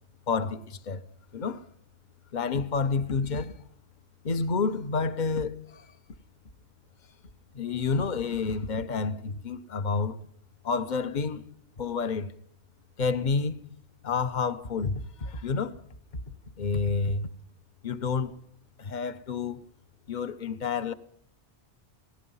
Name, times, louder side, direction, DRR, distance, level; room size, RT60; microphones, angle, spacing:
voice 1, 0.3-1.0 1.3-1.6 2.3-3.6 4.2-5.9 7.5-10.2 10.6-11.5 11.8-12.3 13.0-13.5 14.0-15.8 16.6-17.3 17.8-18.3 18.8-19.6 20.1-20.9, left 4 dB, 45° left, 1.1 m, -29 dB
27.0 x 17.5 x 5.6 m
omnidirectional pair, 1.2 m